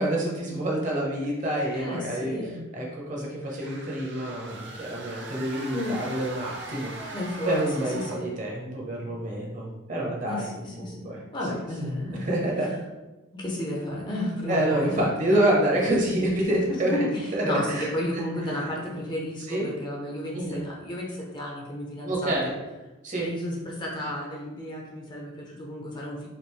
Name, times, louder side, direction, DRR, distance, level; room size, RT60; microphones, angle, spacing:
voice 1, 0.0-2.4 2.7-7.1 7.5-10.5 10.8-11.2 12.1-12.7 14.5-17.0 17.3-17.9 19.5-19.6 20.3-20.6 22.0-22.5 23.0-23.3, right 1 dB, 40° right, -3 dB, 1.0 m, -27 dB
voice 2, 1.7-2.6 5.7-6.0 7.1-8.3 10.2-12.3 13.3-15.1 16.7-22.5 23.2-26.3, left 1 dB, 20° left, -3 dB, 0.7 m, -32 dB
sound 1, 3.4-8.4, right 2 dB, 60° right, 0.7 m, -41 dB
5.1 x 2.5 x 3.2 m, 1.1 s
head